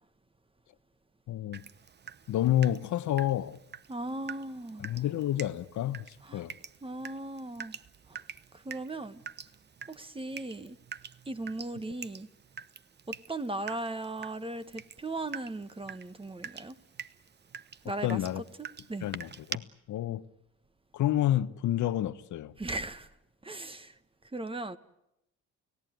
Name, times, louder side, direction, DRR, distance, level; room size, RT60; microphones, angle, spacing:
voice 1, 1.3-1.6 2.3-3.6 4.8-6.5 17.8-18.4 19.0-20.2 20.9-22.5, left 12 dB, 70° left, 1.0 m, -29 dB
Water tap faucet / Drip, 1.5-19.6, right 6 dB, 35° right, 0.9 m, -46 dB
voice 2, 3.9-4.9 6.2-6.5 6.8-7.8 8.1-8.2 8.5-9.2 9.9-10.8 11.3-12.3 13.1-16.8 17.8-19.1 22.6-23.1 23.4-24.0 24.3-24.8, right 2 dB, 20° right, 1.4 m, -38 dB
30.0 x 17.0 x 9.3 m
cardioid pair, 90°, 30 cm